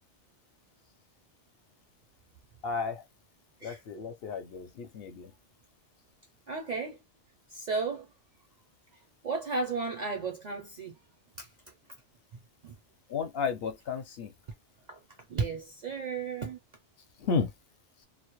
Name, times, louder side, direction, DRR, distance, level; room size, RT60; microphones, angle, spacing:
voice 1, 2.6-3.0 3.6-5.3 13.1-14.3 17.2-17.5, left 5 dB, 65° left, 0.7 m, -33 dB
voice 2, 6.5-7.0 7.5-8.1 9.2-10.9 11.4-11.5 12.6-12.7 14.9-15.0 15.3-16.6, right 4 dB, 55° right, 0.5 m, -33 dB
2.2 x 2.0 x 2.9 m
omnidirectional pair, 1.2 m